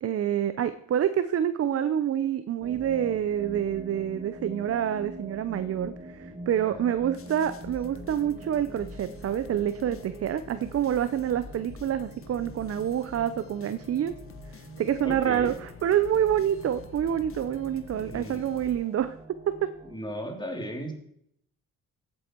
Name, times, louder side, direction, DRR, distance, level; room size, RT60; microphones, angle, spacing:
voice 1, 0.0-14.1 14.5-19.1 19.5-19.7, right 10 dB, 50° right, 13 dB, 0.8 m, -27 dB
sound 1, 2.6-20.0, right 2 dB, 25° right, 2.5 m, -45 dB
sound 2, 7.1-19.3, left 5 dB, 45° left, 1.4 m, -47 dB
voice 2, 15.0-15.6 17.9-18.4 19.9-20.9, equal, 15° left, 3 dB, 3.1 m, -36 dB
15.0 x 8.7 x 4.6 m, 0.72 s
cardioid pair, 90°, 30 cm